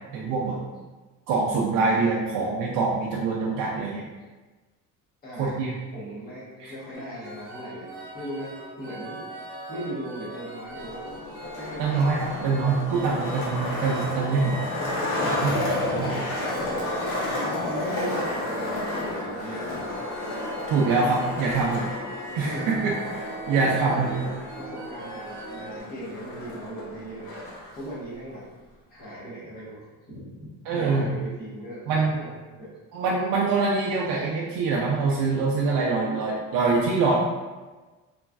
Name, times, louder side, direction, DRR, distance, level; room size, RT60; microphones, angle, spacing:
voice 1, 0.1-0.6 1.3-4.0 5.4-5.7 6.6-6.7 11.8-14.6 15.4-15.6 15.8-16.1 20.7-21.9 22.3-24.2 30.7-31.1 31.9-32.2 32.9-37.1, right 4 dB, 75° right, -4 dB, 0.5 m, -24 dB
voice 2, 5.2-5.6 5.9-7.9 8.1-9.2 9.7-11.0 11.5-12.1 14.4-16.5 17.4-20.1 22.4-22.7 23.4-27.4 27.7-28.4 28.9-32.7, right 1 dB, 25° left, -8 dB, 0.9 m, -38 dB
sound 1, 6.9-25.8, right 1 dB, 35° right, 0.9 m, -40 dB
Skateboard, 10.7-27.7, left 2 dB, 80° left, 0.9 m, -32 dB
3.1 x 2.5 x 2.3 m, 1.3 s
cardioid pair, 175°, 35 cm